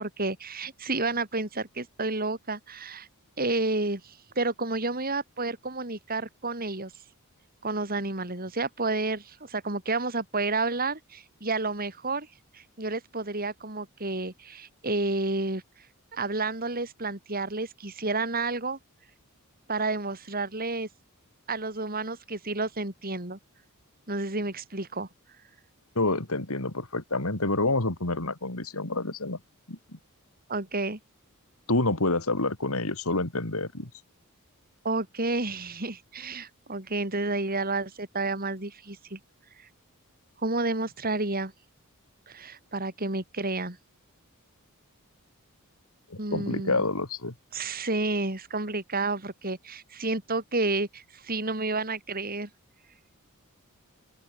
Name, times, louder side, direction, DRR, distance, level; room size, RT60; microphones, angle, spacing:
voice 1, 0.0-3.1 3.4-6.9 7.6-12.3 12.5-15.6 16.1-18.8 19.7-20.9 21.5-23.4 24.1-25.1 30.5-31.0 34.8-39.2 40.4-41.5 42.3-43.8 46.2-46.8 47.5-52.5, right 3 dB, 40° right, 4.4 m, -30 dB
voice 2, 25.9-29.4 29.7-30.0 31.7-33.9 46.1-47.3, left 2 dB, 75° left, 3.1 m, -28 dB
open air
head